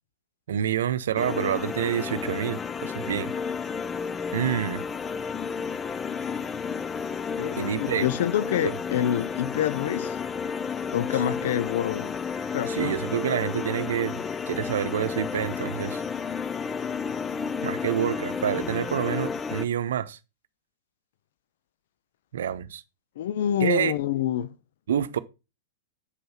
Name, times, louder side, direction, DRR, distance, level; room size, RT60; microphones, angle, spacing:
voice 1, 0.5-3.3 4.3-4.8 7.6-8.1 8.6-8.8 12.7-16.0 17.6-20.2 22.3-22.8 23.6-23.9 24.9-25.2, right 9 dB, 65° right, 0.8 m, -27 dB
sound 1, 1.2-19.7, left 6 dB, 20° left, 0.6 m, -32 dB
voice 2, 7.4-10.2 10.9-12.1 12.5-13.0 23.2-24.5, left 11 dB, 60° left, 0.6 m, -27 dB
8.3 x 5.5 x 5.7 m
figure-of-eight pair, 100°, 0 cm